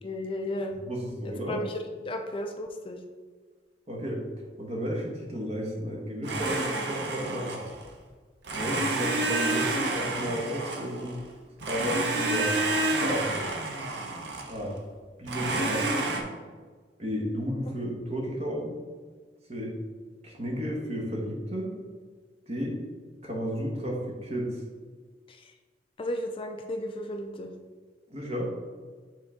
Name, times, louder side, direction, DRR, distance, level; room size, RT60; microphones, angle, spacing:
voice 1, 0.0-0.7 1.5-3.0 25.3-25.5 26.0-27.5, left 1 dB, 30° left, 4 dB, 0.4 m, -34 dB
voice 2, 0.8-1.6 3.9-4.3 4.6-7.6 8.5-11.2 11.6-12.6 12.9-13.5 14.5-14.8 15.2-16.3 17.0-18.7 19.5-19.8 20.2-21.8 22.5-22.8 23.2-24.6 28.1-28.5, equal, 40° right, -1 dB, 1.2 m, -32 dB
Domestic sounds home sounds, 6.2-7.9 8.4-11.2 11.6-14.6 15.3-16.2, right 2 dB, 75° right, 0.8 m, -29 dB
7.4 x 3.7 x 3.6 m, 1.5 s
head